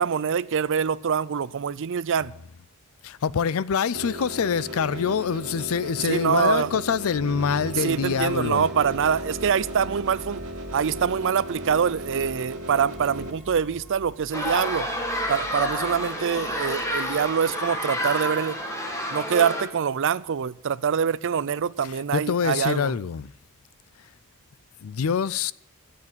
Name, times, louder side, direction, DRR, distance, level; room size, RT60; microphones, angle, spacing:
voice 1, 0.0-2.3 6.0-6.7 7.8-10.4 10.7-14.9 15.3-18.6 19.1-23.0, right 7 dB, 60° right, 0.5 m, -25 dB
voice 2, 3.0-8.7 21.8-23.3 24.8-25.5, left 6 dB, 70° left, 0.4 m, -25 dB
sound 1, 3.9-13.3, equal, 85° right, 1.7 m, -36 dB
sound 2, 7.1-18.1, equal, ahead, 3.7 m, -45 dB
sound 3, 14.3-19.7, equal, 15° left, 2.1 m, -29 dB
13.5 x 8.4 x 7.3 m
head